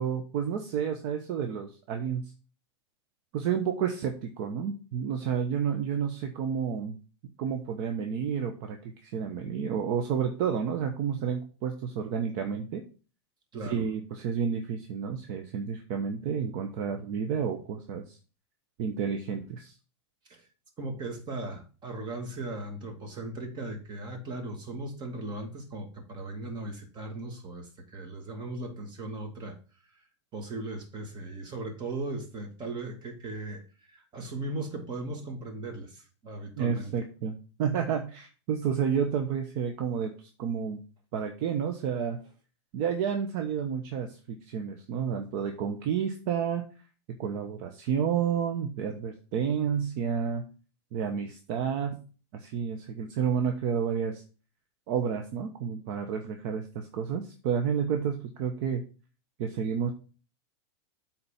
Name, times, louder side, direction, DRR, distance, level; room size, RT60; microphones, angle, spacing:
voice 1, 0.0-2.2 3.3-7.0 7.4-8.8 9.0-12.8 13.6-18.2 18.8-19.7 36.6-40.8 41.1-42.2 42.7-46.6 47.2-50.4 50.9-52.0 52.3-54.2 54.9-58.8 59.4-59.9, right 7 dB, 50° right, 5 dB, 1.1 m, -30 dB
voice 2, 13.5-13.8 20.3-20.5 20.8-29.6 30.3-36.9, right 2 dB, 30° right, 4 dB, 2.4 m, -38 dB
8.1 x 4.2 x 5.8 m, 0.36 s
hypercardioid pair, 120°, 15 cm